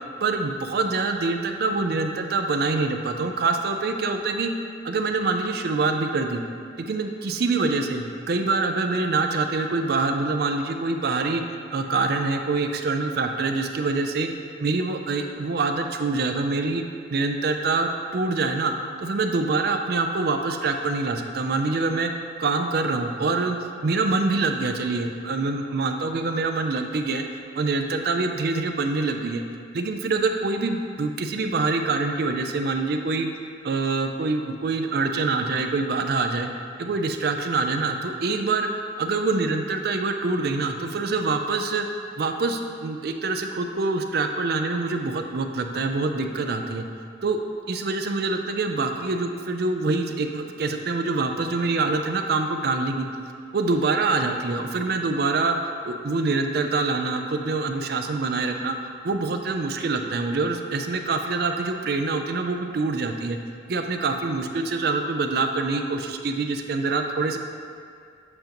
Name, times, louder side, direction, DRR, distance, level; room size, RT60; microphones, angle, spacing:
voice 1, 0.2-4.5 4.8-6.4 6.8-11.4 11.7-14.3 14.6-16.8 17.1-18.7 19.0-22.1 22.4-23.6 23.8-27.2 27.6-29.4 29.7-33.3 33.6-36.5 36.8-38.7 39.0-41.9 42.2-46.8 47.2-47.4 47.7-53.1 53.5-58.8 59.0-63.4 63.7-67.4, right 3 dB, 55° right, 5 dB, 0.4 m, -25 dB
7.8 x 5.1 x 3.0 m, 2.3 s
head